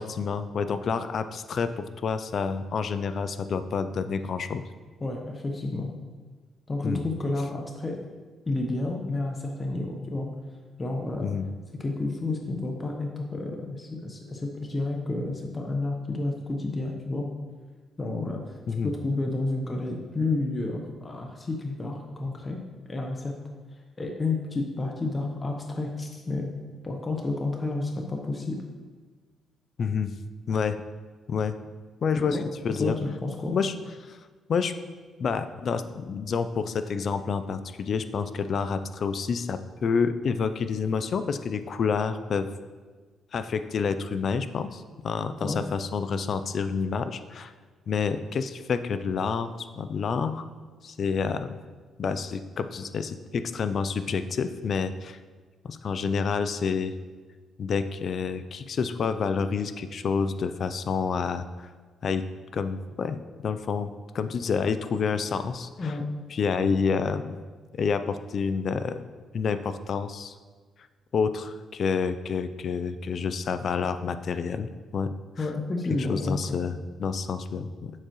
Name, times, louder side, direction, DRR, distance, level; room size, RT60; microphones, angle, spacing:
voice 1, 0.0-4.6 6.8-7.0 11.2-11.5 18.7-18.9 29.8-30.1 30.5-30.8 31.3-31.5 32.0-32.4 32.6-33.0 33.5-33.7 34.0-34.2 34.5-34.7 35.2-42.5 43.3-47.5 47.9-50.4 50.8-51.6 52.0-55.2 55.6-56.9 57.6-61.5 62.0-62.2 62.5-63.2 63.4-66.0 66.3-67.4 67.7-69.0 69.3-70.3 71.1-75.1 75.4-75.5 76.0-77.9, left 5 dB, 55° left, 11 dB, 0.4 m, -28 dB
voice 2, 5.0-5.9 6.7-8.0 8.5-10.3 10.8-11.3 11.8-17.3 18.0-18.5 18.8-22.6 22.9-23.3 24.0-26.5 26.8-28.6 32.3-32.4 32.8-33.5 45.4-45.6 65.8-66.0 75.4-76.6, left 2 dB, 30° left, 2 dB, 0.9 m, -30 dB
7.4 x 6.7 x 3.1 m, 1.4 s
cardioid pair, 90°, 0 cm